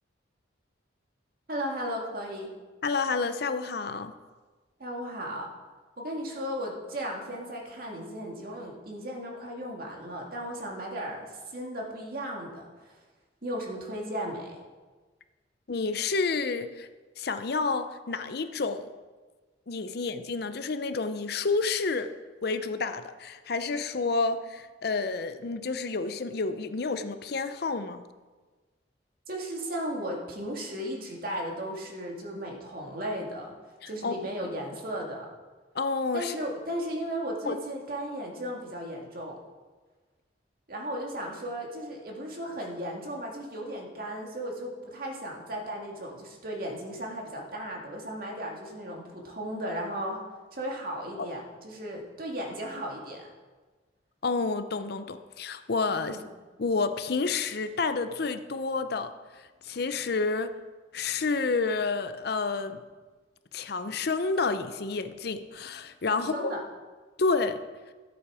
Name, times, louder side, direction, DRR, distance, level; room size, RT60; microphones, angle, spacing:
voice 1, 1.5-2.5 4.8-5.5 6.0-12.9 13.4-14.6 29.3-33.5 33.8-35.3 36.1-39.4 40.7-50.2 50.5-53.3 55.9-56.2 66.1-66.6, equal, 50° right, 0 dB, 2.1 m, -35 dB
voice 2, 2.8-4.1 15.7-16.9 17.2-18.9 19.7-22.1 22.4-28.0 33.8-34.2 35.8-36.4 37.4-37.6 51.2-51.3 54.2-56.2 56.6-59.1 59.6-60.5 60.9-62.8 63.5-66.5 67.2-67.6, left 4 dB, 55° left, 10 dB, 0.6 m, -29 dB
14.0 x 8.3 x 4.8 m, 1.3 s
head